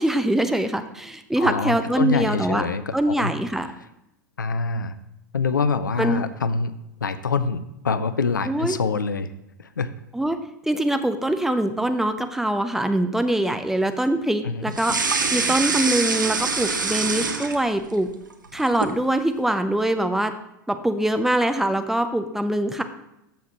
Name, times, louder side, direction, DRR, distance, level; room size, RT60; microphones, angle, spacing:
voice 1, 0.0-2.7 2.9-3.7 6.0-6.3 8.5-8.8 10.1-10.4 10.7-18.1 18.5-20.3 20.7-22.8, right 1 dB, 5° right, 8 dB, 0.6 m, -23 dB
voice 2, 1.4-3.3 4.4-4.9 5.3-6.7 7.0-9.3 9.6-9.9 14.4-14.6, left 4 dB, 75° left, 13 dB, 0.6 m, -25 dB
sound 1, 14.7-17.9 18.3-19.0, right 4 dB, 80° right, 0.9 m, -25 dB
14.0 x 5.9 x 3.0 m, 0.85 s
figure-of-eight pair, 90°, 10 cm